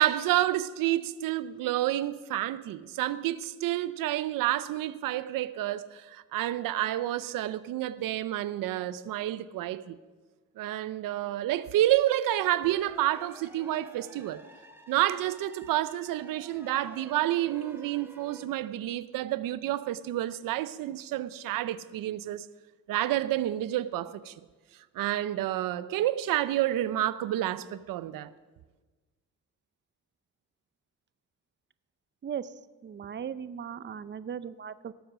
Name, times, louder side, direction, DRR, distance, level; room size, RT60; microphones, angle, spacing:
voice 1, 0.0-10.0 10.6-14.4 14.9-22.5 22.9-24.3 25.0-28.3, right 14 dB, 90° right, 0.6 m, -29 dB
sound 1, 12.6-18.5, equal, 5° right, 2.4 m, -52 dB
voice 2, 32.2-32.5 32.8-34.9, right 8 dB, 35° right, 0.6 m, -37 dB
18.0 x 7.9 x 6.1 m
cardioid pair, 80°, 32 cm